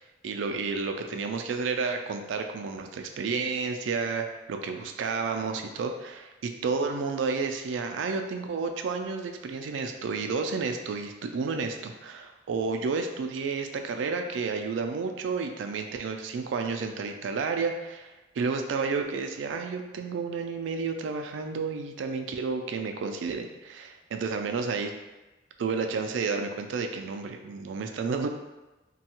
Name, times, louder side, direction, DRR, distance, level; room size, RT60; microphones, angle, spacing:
voice 1, 0.0-24.9 25.6-28.3, right 4 dB, 85° right, 5 dB, 0.3 m, -31 dB
3.1 x 2.3 x 2.9 m, 1.1 s
head